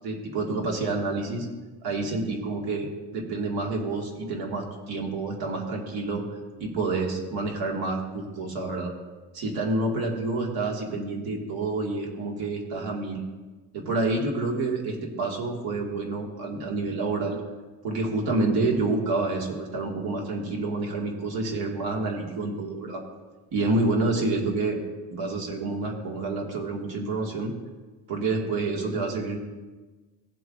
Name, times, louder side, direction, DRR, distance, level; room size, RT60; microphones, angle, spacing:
voice 1, 0.0-1.5 1.8-6.3 6.6-8.9 9.3-13.2 13.7-17.4 17.8-23.0 23.5-24.8 25.1-27.5 28.1-29.4, right 3 dB, 80° right, 0 dB, 2.0 m, -28 dB
17.0 x 7.8 x 2.5 m, 1.3 s
cardioid pair, 160°, 37 cm